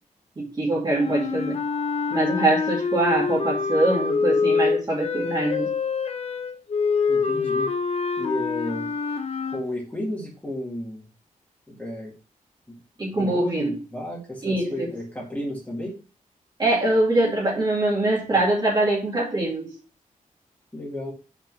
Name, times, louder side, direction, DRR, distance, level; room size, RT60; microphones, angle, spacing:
voice 1, 0.4-1.6 2.1-5.7 13.0-13.8 14.4-14.9 16.6-19.7, right 2 dB, 30° right, -5 dB, 2.4 m, -23 dB
sound 1, 0.9-9.6, left 5 dB, 45° left, 0.7 m, -25 dB
voice 2, 7.1-7.7 8.2-8.9 9.5-11.0 11.7-12.1 12.7-12.8 13.1-16.0 20.7-21.1, left 1 dB, 10° left, -5 dB, 2.2 m, -32 dB
5.8 x 4.4 x 6.1 m, 0.36 s
wide cardioid pair, 180°, 14 cm